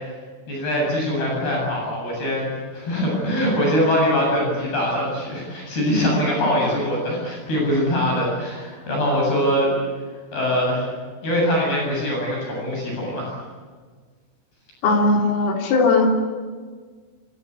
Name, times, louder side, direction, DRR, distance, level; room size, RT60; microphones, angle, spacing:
voice 1, 0.5-9.7 10.3-10.9 11.2-13.3, equal, 50° left, -2 dB, 9.8 m, -22 dB
voice 2, 14.8-16.2, left 3 dB, 80° left, 1 dB, 6.2 m, -18 dB
27.0 x 26.0 x 8.4 m, 1.5 s
omnidirectional pair, 5.8 m